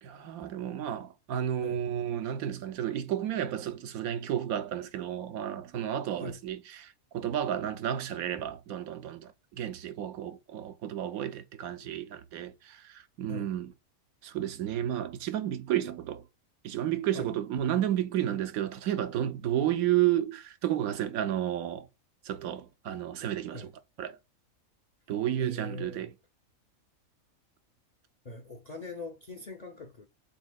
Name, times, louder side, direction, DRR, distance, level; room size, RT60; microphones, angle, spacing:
voice 1, 0.0-13.7 14.2-16.2 16.6-21.9 22.2-23.7 24.0-24.2 25.1-26.1, right 11 dB, 85° right, 1.1 m, -32 dB
voice 2, 25.4-26.1 28.2-30.1, left 2 dB, 50° left, 0.5 m, -41 dB
6.9 x 2.7 x 2.2 m
omnidirectional pair, 1.5 m